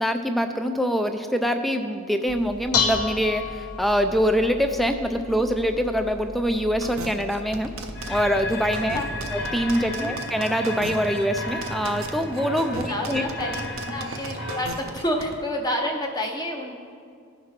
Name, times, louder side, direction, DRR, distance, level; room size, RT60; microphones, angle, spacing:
voice 1, 0.0-7.7 8.1-9.0 9.3-13.2, equal, ahead, 6 dB, 0.3 m, -24 dB
Dishes pots and pans, 2.3-9.7, left 5 dB, 75° left, 1.0 m, -33 dB
sound 1, 6.8-15.3, right 3 dB, 60° right, 0.6 m, -36 dB
sound 2, 7.9-14.7, left 1 dB, 50° left, 1.3 m, -33 dB
voice 2, 9.8-10.1 12.8-16.8, left 1 dB, 20° left, 1 dB, 0.7 m, -29 dB
15.5 x 5.8 x 3.2 m, 2.3 s
head